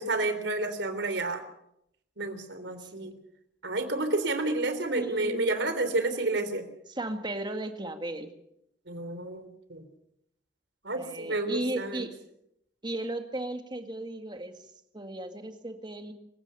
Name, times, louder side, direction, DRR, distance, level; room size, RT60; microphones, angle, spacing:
voice 1, 0.0-1.5 2.2-3.1 3.6-6.6 8.9-9.8 10.8-12.0, right 2 dB, 70° right, 10 dB, 3.4 m, -30 dB
voice 2, 2.8-3.2 4.9-5.6 6.9-8.3 10.9-12.1 12.8-14.6 14.9-16.1, right 1 dB, 25° right, 6 dB, 2.0 m, -36 dB
27.0 x 16.0 x 6.9 m, 0.78 s
head